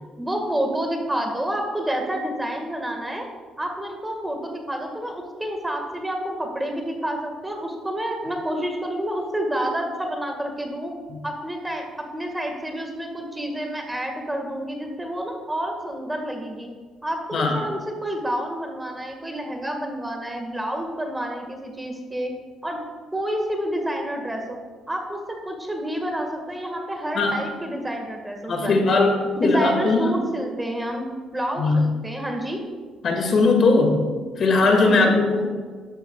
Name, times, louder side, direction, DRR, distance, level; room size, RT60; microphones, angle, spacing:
voice 1, 0.2-3.2 3.6-10.9 11.2-16.7 17.0-22.3 22.6-22.8 23.1-24.6 24.9-29.1 29.4-32.6 34.8-35.2, right 1 dB, 10° right, 3 dB, 1.7 m, -29 dB
voice 2, 17.3-17.6 27.1-27.4 28.5-30.1 31.6-31.9 33.0-34.1 34.4-35.5, left 3 dB, 50° left, 3 dB, 2.1 m, -19 dB
12.5 x 12.0 x 2.4 m, 1.5 s
cardioid pair, 100°, 0 cm